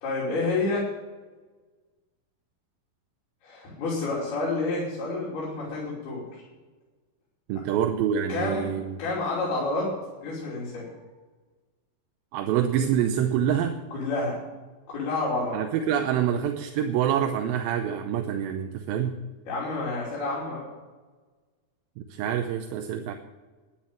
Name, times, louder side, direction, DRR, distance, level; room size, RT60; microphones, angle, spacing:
voice 1, 0.0-0.9 3.4-6.4 8.3-8.7 9.0-9.9 10.2-10.9 13.9-14.4 14.9-15.6 19.5-20.7, left 2 dB, 85° left, -7 dB, 4.9 m, -29 dB
voice 2, 7.5-9.0 12.3-13.8 15.5-19.2 22.0-23.1, right 9 dB, 80° right, 5 dB, 2.5 m, -26 dB
11.5 x 10.0 x 7.2 m, 1.3 s
omnidirectional pair, 4.4 m